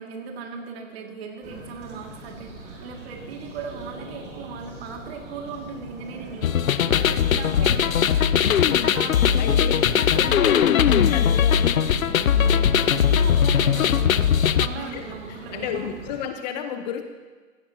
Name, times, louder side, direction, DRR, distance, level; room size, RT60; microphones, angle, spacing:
voice 1, 0.0-10.5 12.3-16.0, right 5 dB, 50° right, 2 dB, 2.1 m, -38 dB
sound 1, 1.4-16.2, right 2 dB, 25° right, 2.5 m, -40 dB
sound 2, 6.4-14.7, left 8 dB, 90° left, 0.6 m, -19 dB
voice 2, 7.6-8.1 9.4-9.7 10.0-11.9 14.8-15.0 15.5-17.0, left 8 dB, 30° left, 8 dB, 0.7 m, -32 dB
15.5 x 15.0 x 2.8 m, 1.4 s
hypercardioid pair, 130°, 40 cm